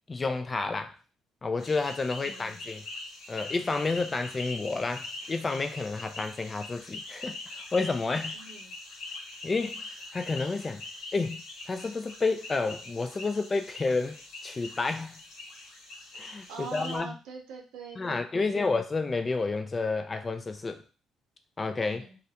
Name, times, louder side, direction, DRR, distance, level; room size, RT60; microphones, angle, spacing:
voice 1, 0.1-0.9 1.4-2.8 3.3-8.3 9.4-9.8 10.1-10.8 11.1-15.2 16.2-17.1 18.0-20.8 21.6-22.1, left 3 dB, 25° left, 0.3 m, -30 dB
sound 1, 1.6-17.0, left 2 dB, 75° left, 0.9 m, -43 dB
voice 2, 2.2-2.5 8.3-8.7 16.5-18.7 21.8-22.2, right 5 dB, 85° right, 0.7 m, -44 dB
2.4 x 2.1 x 2.8 m
cardioid pair, 90°, 0 cm